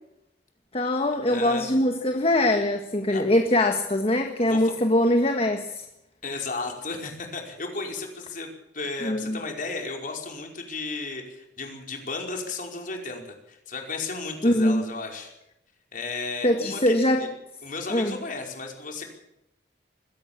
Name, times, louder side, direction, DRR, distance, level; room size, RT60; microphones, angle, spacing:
voice 1, 0.7-5.9 9.0-9.4 14.4-14.8 16.4-17.3 17.9-18.2, left 1 dB, 35° left, 5 dB, 1.6 m, -22 dB
voice 2, 1.3-1.7 3.1-3.2 4.5-4.7 6.2-13.2 13.5-15.3 15.9-17.0 17.6-19.1, left 3 dB, 50° left, 2 dB, 5.2 m, -34 dB
22.0 x 17.0 x 7.3 m, 0.83 s
head